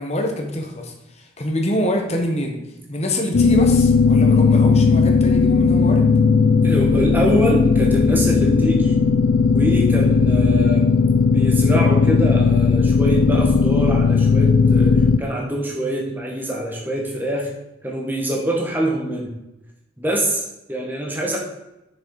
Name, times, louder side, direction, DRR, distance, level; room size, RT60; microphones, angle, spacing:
voice 1, 0.0-2.6 2.9-6.1, left 1 dB, 35° left, 2 dB, 1.2 m, -25 dB
sound 1, 3.3-15.2, left 5 dB, 65° left, 0.4 m, -16 dB
voice 2, 6.6-9.0 9.5-10.9 11.3-17.5 17.8-19.3 20.0-21.4, right 1 dB, 10° right, -1 dB, 1.4 m, -24 dB
6.6 x 6.4 x 4.7 m, 0.92 s
head